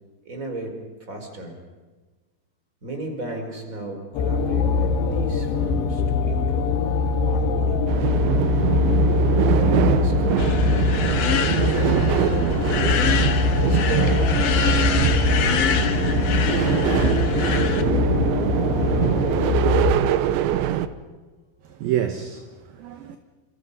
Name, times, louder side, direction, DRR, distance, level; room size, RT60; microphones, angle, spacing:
voice 1, 0.2-1.6 2.8-6.8 7.2-7.9 9.5-12.3 13.6-16.7 17.0-18.4, right 2 dB, 20° right, 4.6 m, -36 dB
sound 1, 4.1-19.9, left 4 dB, 80° left, 3.8 m, -22 dB
sound 2, 7.9-20.9, right 11 dB, 85° right, 3.3 m, -23 dB
sound 3, 10.4-17.8, left 7 dB, 60° left, 1.8 m, -27 dB
voice 2, 21.6-23.2, right 10 dB, 65° right, 2.6 m, -28 dB
29.0 x 27.5 x 5.5 m
omnidirectional pair, 5.1 m